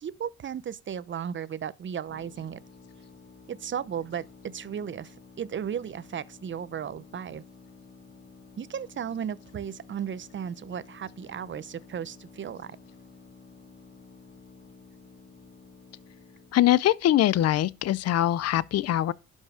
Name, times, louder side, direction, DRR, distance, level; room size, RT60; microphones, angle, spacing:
voice 1, 0.0-2.6 3.5-7.4 8.6-12.8, right 8 dB, 40° right, 0.7 m, -35 dB
sound 1, 2.1-16.6, left 4 dB, 35° left, 4.4 m, -52 dB
voice 2, 16.5-19.1, left 13 dB, 55° left, 0.5 m, -23 dB
11.5 x 5.5 x 4.9 m
cardioid pair, 90°, 30 cm